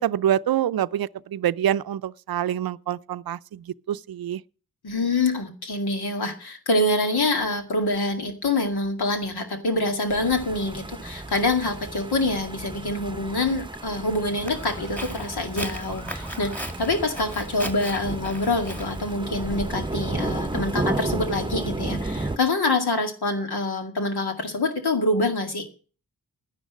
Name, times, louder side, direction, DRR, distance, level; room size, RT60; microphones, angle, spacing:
voice 1, 0.0-4.4, right 11 dB, 70° right, 0.5 m, -26 dB
voice 2, 4.8-25.7, left 2 dB, 85° left, 2.3 m, -26 dB
sound 1, 10.1-22.4, right 2 dB, 15° right, 0.8 m, -33 dB
Walk footsteps, 14.5-20.6, equal, 5° left, 2.1 m, -38 dB
10.5 x 10.5 x 6.2 m
cardioid pair, 70°, 37 cm